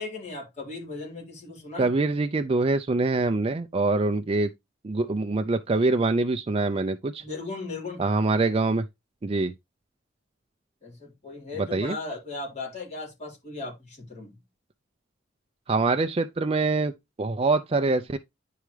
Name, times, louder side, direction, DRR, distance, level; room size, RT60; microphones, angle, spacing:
voice 1, 0.0-1.9 7.2-8.0 10.8-14.3, left 3 dB, 35° left, 4.2 m, -37 dB
voice 2, 1.8-4.5 4.8-7.2 8.0-8.8 9.2-9.5 11.7-11.9 15.7-16.9 17.2-18.2, right 3 dB, 30° right, 0.4 m, -24 dB
10.0 x 4.7 x 3.2 m
head